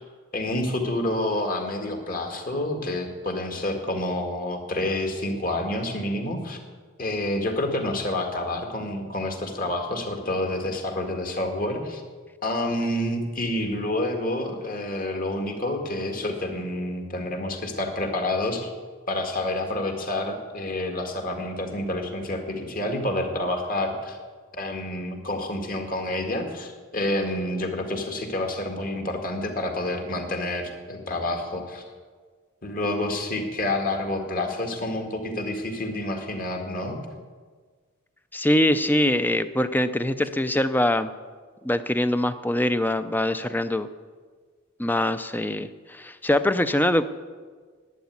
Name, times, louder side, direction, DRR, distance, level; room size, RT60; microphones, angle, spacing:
voice 1, 0.3-6.6 7.0-12.0 12.4-18.7 19.1-24.2 24.6-31.8 32.6-37.0, left 1 dB, 40° left, 4 dB, 1.9 m, -28 dB
voice 2, 38.3-41.1 41.6-43.9 44.8-47.0, left 1 dB, 10° left, 12 dB, 0.5 m, -23 dB
11.5 x 9.6 x 9.5 m, 1.5 s
head